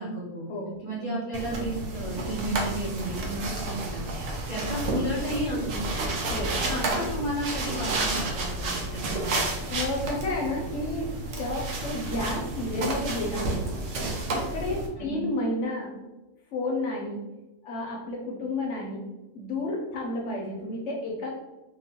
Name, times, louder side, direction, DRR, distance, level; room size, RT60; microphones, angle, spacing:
voice 1, 0.0-0.5 0.8-4.0 4.5-6.2 6.6-9.5 15.0-15.2, right 1 dB, 45° right, -7 dB, 0.4 m, -33 dB
sound 1, 1.3-14.9, right 2 dB, 65° right, 0.8 m, -31 dB
voice 2, 9.7-11.1 11.4-13.7 14.3-15.9 16.5-17.3 17.6-19.1 19.3-21.3, left 2 dB, 65° left, -1 dB, 0.8 m, -31 dB
2.9 x 2.2 x 2.7 m, 1.1 s
omnidirectional pair, 1.5 m